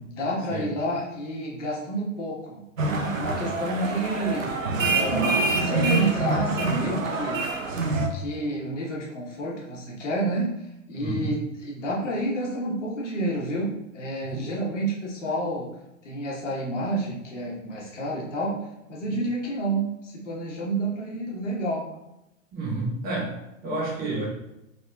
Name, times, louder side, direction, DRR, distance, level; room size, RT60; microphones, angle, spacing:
voice 1, 0.1-2.6 3.0-4.6 4.9-7.6 8.1-10.5 10.9-15.7 16.0-18.5 18.9-21.9, right 1 dB, 65° left, -3 dB, 1.3 m, -29 dB
sound 1, 2.8-8.1, right 3 dB, 85° right, 0.7 m, -25 dB
voice 2, 11.0-11.3 14.2-14.4 19.0-19.1 22.5-24.3, right 2 dB, 25° right, -5 dB, 1.4 m, -30 dB
3.9 x 3.5 x 2.3 m, 0.88 s
figure-of-eight pair, 100°, 39 cm